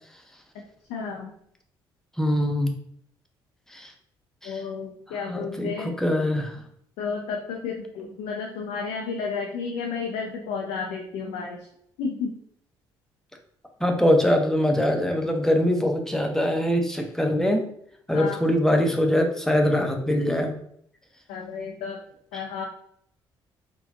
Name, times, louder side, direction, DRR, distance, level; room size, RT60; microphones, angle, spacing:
voice 1, 0.9-1.3 4.4-5.9 7.0-11.7 12.0-12.3 18.1-18.4 21.3-22.0 22.3-22.6, left 5 dB, 70° left, 1 dB, 0.5 m, -32 dB
voice 2, 2.2-2.7 3.7-3.9 4.4-4.6 5.1-6.6 13.8-17.6 18.1-20.5 22.3-22.4, left 1 dB, 5° left, 3 dB, 0.7 m, -23 dB
3.8 x 2.3 x 2.6 m, 0.67 s
hypercardioid pair, 50°, 12 cm